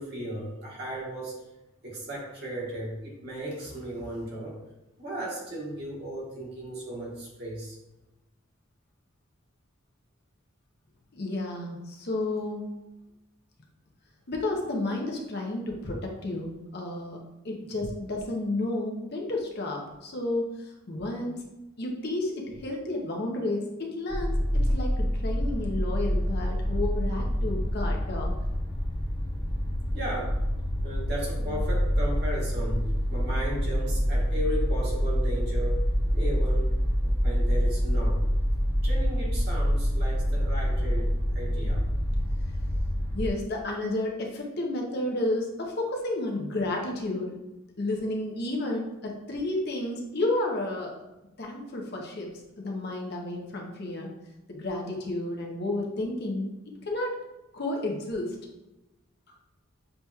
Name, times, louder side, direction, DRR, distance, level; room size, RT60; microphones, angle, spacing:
voice 1, 0.0-1.4 1.8-4.6 5.0-7.7 29.9-30.3 30.8-35.8 36.1-36.7 37.0-38.2 38.8-41.8, right 1 dB, 50° right, -5 dB, 1.4 m, -35 dB
voice 2, 11.1-12.7 14.3-21.4 21.8-24.3 24.7-28.3 31.4-31.6 43.1-47.3 47.8-51.0 51.4-54.1 54.5-56.5 56.8-57.2 57.5-58.4, left 2 dB, 50° left, 0 dB, 0.7 m, -31 dB
sound 1, 24.1-43.3, equal, 20° left, 0.9 m, -26 dB
6.7 x 2.9 x 2.3 m, 1.0 s
head